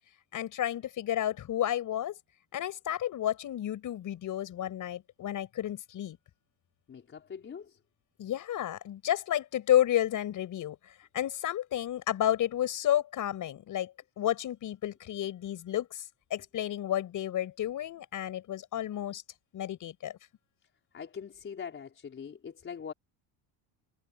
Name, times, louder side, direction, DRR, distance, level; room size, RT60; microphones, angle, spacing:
voice 1, 0.3-2.1 2.5-6.2 8.2-16.0 16.3-19.2 19.5-20.2, left 11 dB, 40° left, 5.9 m, -31 dB
voice 2, 6.9-7.8 20.9-22.9, left 7 dB, 25° left, 4.6 m, -42 dB
cardioid pair, 165°, 47 cm